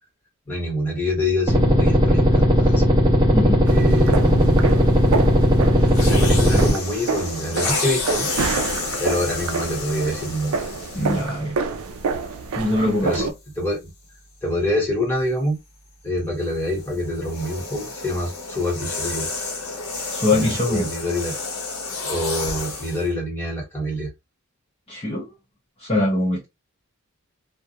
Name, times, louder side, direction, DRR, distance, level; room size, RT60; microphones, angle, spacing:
voice 1, 0.5-2.8 3.4-4.7 5.9-8.3 9.0-10.5 11.0-11.6 13.0-13.3 13.6-13.9 14.4-15.6 16.0-19.3 20.3-21.4 22.0-24.1, left 1 dB, 10° left, 1.1 m, -26 dB
sound 1, 1.5-6.7, equal, 15° right, 0.6 m, -17 dB
voice 2, 3.3-3.6 10.9-11.5 12.6-13.3 20.1-20.9 24.9-25.3 25.8-26.5, left 2 dB, 25° left, 0.7 m, -23 dB
sound 2, 3.7-13.3, right 4 dB, 70° right, 0.4 m, -28 dB
sound 3, 5.9-11.4 12.2-12.4 16.4-23.1, left 3 dB, 70° left, 0.8 m, -30 dB
2.4 x 2.1 x 2.7 m
head